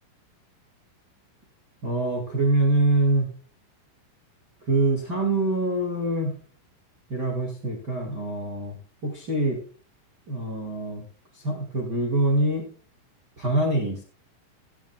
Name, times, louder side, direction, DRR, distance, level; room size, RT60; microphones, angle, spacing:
voice 1, 1.8-3.3 4.7-6.4 7.1-8.8 9.0-9.6 10.3-11.0 11.3-12.7 13.4-14.0, right 2 dB, 55° right, 0 dB, 1.1 m, -24 dB
17.5 x 10.0 x 2.3 m, 0.41 s
omnidirectional pair, 5.8 m